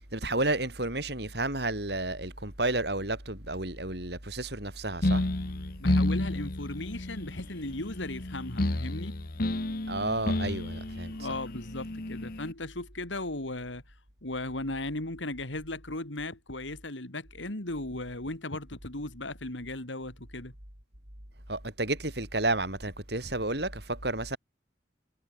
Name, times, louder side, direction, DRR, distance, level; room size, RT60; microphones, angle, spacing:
voice 1, 0.1-5.2 9.9-11.3 21.5-24.4, right 2 dB, 60° right, 6.6 m, -31 dB
sound 1, 5.0-12.5, left 1 dB, 50° left, 1.2 m, -31 dB
voice 2, 5.8-9.2 11.1-13.8 14.2-20.5, left 2 dB, 90° left, 3.5 m, -37 dB
head